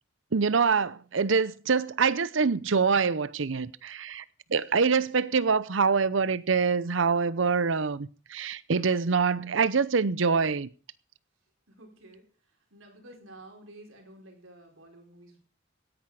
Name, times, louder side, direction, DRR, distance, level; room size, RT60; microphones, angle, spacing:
voice 1, 0.3-4.2 4.5-10.7, right 5 dB, 65° right, 0.7 m, -25 dB
voice 2, 11.7-12.2 12.7-15.4, right 1 dB, 90° right, 4.5 m, -51 dB
17.0 x 10.5 x 4.9 m
head